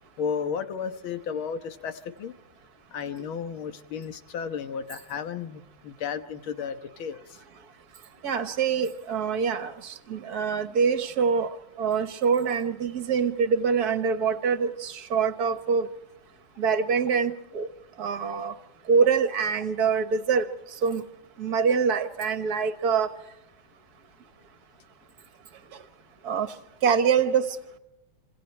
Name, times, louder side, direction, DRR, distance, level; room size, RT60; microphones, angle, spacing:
voice 1, 0.2-2.3 2.9-7.2, left 6 dB, 85° left, 2.0 m, -33 dB
voice 2, 8.2-9.7 10.1-11.5 11.8-15.9 16.6-17.7 18.0-18.5 18.9-20.5 20.8-21.0 21.4-23.1 26.3-26.5 26.8-27.5, right 6 dB, 55° right, 1.6 m, -24 dB
26.5 x 26.0 x 4.5 m
omnidirectional pair, 2.2 m